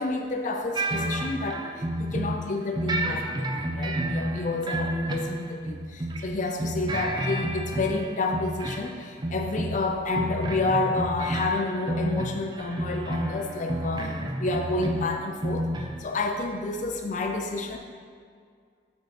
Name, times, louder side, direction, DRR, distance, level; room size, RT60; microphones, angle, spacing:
voice 1, 0.0-15.7 16.0-17.8, left 2 dB, 40° left, 3 dB, 0.5 m, -29 dB
sound 1, 0.8-2.5 2.8-6.3 6.6-8.9 9.2-9.9 10.1-16.0, right 1 dB, 25° right, 0.5 m, -30 dB
8.2 x 4.5 x 4.2 m, 2.1 s
head